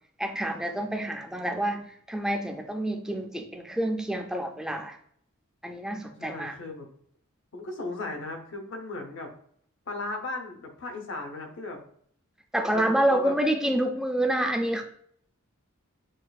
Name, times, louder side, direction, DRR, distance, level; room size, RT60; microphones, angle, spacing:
voice 1, 0.2-5.0 5.6-6.5 12.5-14.8, right 1 dB, 5° right, 4 dB, 0.3 m, -28 dB
voice 2, 6.2-6.9 7.5-9.3 9.9-11.8 12.7-13.3, left 2 dB, 60° left, 3 dB, 0.8 m, -36 dB
6.3 x 2.5 x 2.3 m, 0.63 s
head